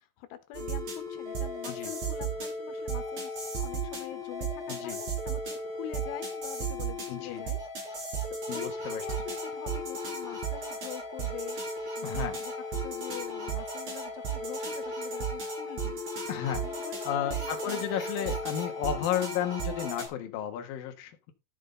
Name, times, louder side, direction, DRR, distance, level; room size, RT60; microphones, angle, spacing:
voice 1, 0.0-8.1 8.5-11.6 12.0-12.5 12.8-16.0 16.6-17.9 18.2-18.3, left 12 dB, 80° left, 3.6 m, -45 dB
sound 1, 0.5-20.1, right 2 dB, 40° right, 5.0 m, -35 dB
voice 2, 4.7-5.0 7.1-7.4 8.5-9.0 12.0-12.4 16.3-16.6 17.1-21.3, left 10 dB, 65° left, 2.6 m, -33 dB
13.5 x 6.2 x 3.8 m
omnidirectional pair, 5.5 m